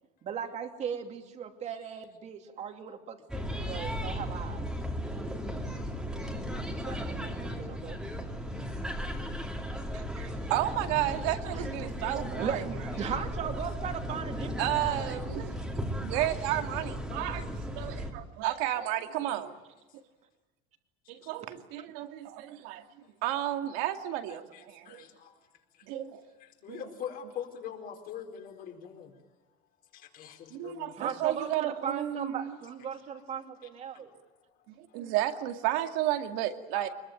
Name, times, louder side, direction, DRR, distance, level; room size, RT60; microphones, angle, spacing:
voice 1, 0.2-3.2 3.5-4.7 6.9-8.0 11.5-11.7 12.0-15.1 31.0-34.1, right 7 dB, 35° right, 2.7 m, -38 dB
voice 2, 3.3-4.1 6.2-6.8 21.2-21.3 24.3-25.4 25.7-25.9 26.4-29.2 29.9-31.3 32.9-34.2 34.5-35.1 36.7-36.9, left 8 dB, 45° left, 4.5 m, -45 dB
sound 1, 3.3-18.1, equal, 5° right, 2.6 m, -36 dB
voice 3, 9.9-12.6 14.6-19.5 21.3-22.8 23.2-25.0 25.8-26.2 26.7-26.8 30.5-32.6 34.8-36.9, right 13 dB, 75° right, 2.4 m, -32 dB
24.5 x 21.5 x 9.1 m
cardioid pair, 165°, 21 cm